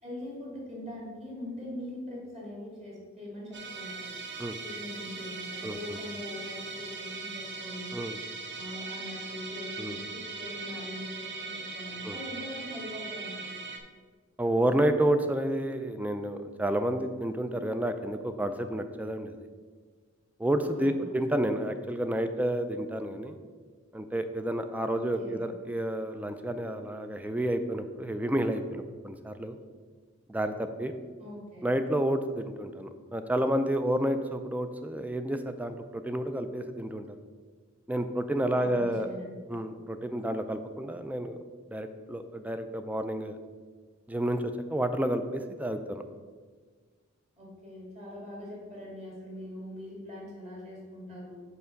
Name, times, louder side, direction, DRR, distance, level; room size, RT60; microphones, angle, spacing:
voice 1, 0.0-4.1 4.6-7.9 8.5-13.5 20.7-21.1 24.9-25.4 31.2-31.7 38.5-39.3 47.4-51.4, left 1 dB, 30° right, -3 dB, 2.3 m, -42 dB
Musical instrument, 3.5-13.8, right 4 dB, 60° right, 0.8 m, -40 dB
voice 2, 14.4-19.4 20.4-23.4 23.9-29.6 30.3-30.9 31.6-37.2 37.9-39.1 39.5-41.4 41.7-43.4 44.1-46.0, right 1 dB, 5° right, 9 dB, 0.4 m, -30 dB
5.6 x 4.6 x 6.3 m, 1.5 s
head